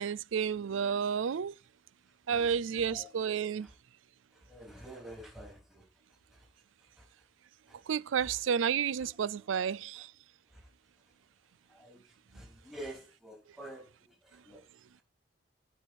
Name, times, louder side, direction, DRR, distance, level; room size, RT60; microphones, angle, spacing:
voice 1, 0.0-1.5 2.3-3.7 7.9-10.1, right 7 dB, 85° right, 0.4 m, -31 dB
voice 2, 2.3-3.1 3.6-3.7 4.3-5.9 6.3-6.5 7.0-7.1 7.7-7.8 8.2-8.3 9.0-9.1 9.6-10.1 10.5-10.7 11.7-12.0 12.3-14.6, right 1 dB, ahead, 3.0 m, -49 dB
14.5 x 4.9 x 4.2 m
head